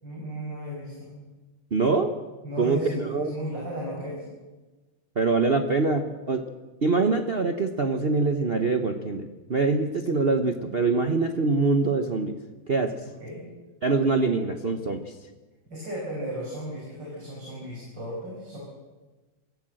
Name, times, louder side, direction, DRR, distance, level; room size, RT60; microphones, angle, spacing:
voice 1, 0.0-1.1 2.4-4.2 13.2-13.4 15.7-18.6, right 1 dB, 60° right, -4 dB, 6.5 m, -35 dB
voice 2, 1.7-2.1 2.6-3.3 5.2-6.4 6.8-12.4 12.7-13.0 13.8-15.1, right 3 dB, 35° right, 7 dB, 1.0 m, -24 dB
24.5 x 16.0 x 7.7 m, 1.2 s
omnidirectional pair, 2.2 m